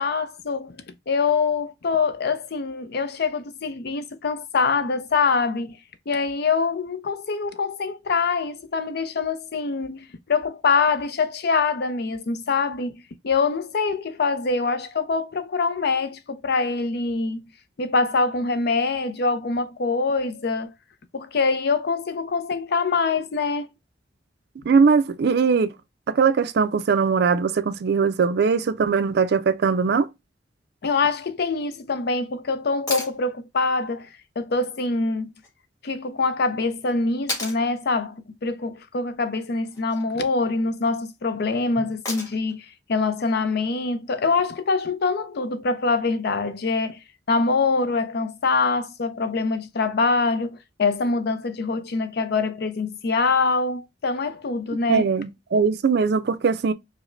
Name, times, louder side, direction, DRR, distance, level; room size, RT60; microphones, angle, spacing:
voice 1, 0.0-5.8 6.1-12.9 13.2-17.4 17.8-20.7 21.1-23.7 30.8-34.1 34.4-35.3 35.8-47.0 47.3-55.0, left 4 dB, 55° left, 0.5 m, -24 dB
voice 2, 24.6-25.7 26.1-30.1 54.9-56.7, right 5 dB, 60° right, 0.4 m, -20 dB
sound 1, 32.9-33.2 35.4-35.5 37.3-37.6 39.6-40.0 42.0-42.5 44.6-44.7, left 2 dB, 20° left, 1.9 m, -31 dB
4.9 x 2.1 x 2.5 m
head